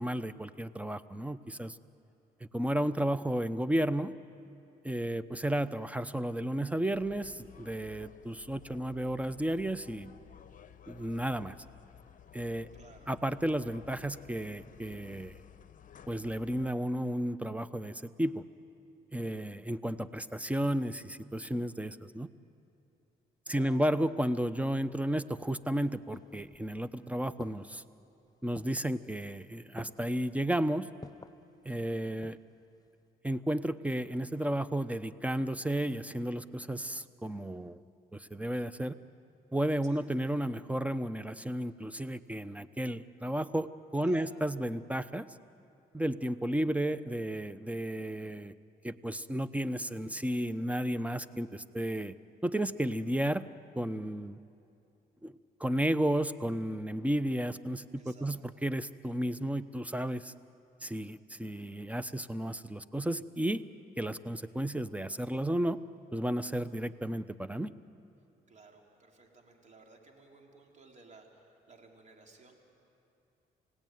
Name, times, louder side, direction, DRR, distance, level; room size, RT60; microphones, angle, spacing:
voice 1, 0.0-1.8 2.5-4.1 4.8-10.1 10.9-11.6 12.3-12.7 13.1-15.4 16.1-18.4 19.1-22.3 23.5-27.8 28.4-30.9 31.6-32.4 33.2-37.8 38.1-39.0 39.5-45.3 45.9-48.5 48.8-52.1 52.4-53.5 53.8-54.4 55.2-60.3 60.8-63.6 64.0-65.8 66.1-67.7, right 1 dB, 10° right, 14 dB, 0.9 m, -33 dB
sound 1, 6.9-16.7, left 9 dB, 50° left, 1.0 m, -54 dB
voice 2, 12.7-13.1 23.5-23.9 39.8-40.1 44.0-44.4 58.0-58.6 68.5-72.5, right 4 dB, 45° right, 1 dB, 4.2 m, -56 dB
sound 2, 25.6-26.9 27.4-27.9 28.6-29.0 29.8-30.2 31.0-31.4 32.0-32.6 32.9-33.0, left 3 dB, 20° left, 0.8 m, -49 dB
28.5 x 17.5 x 9.4 m, 2.7 s
supercardioid pair, 70°, 17 cm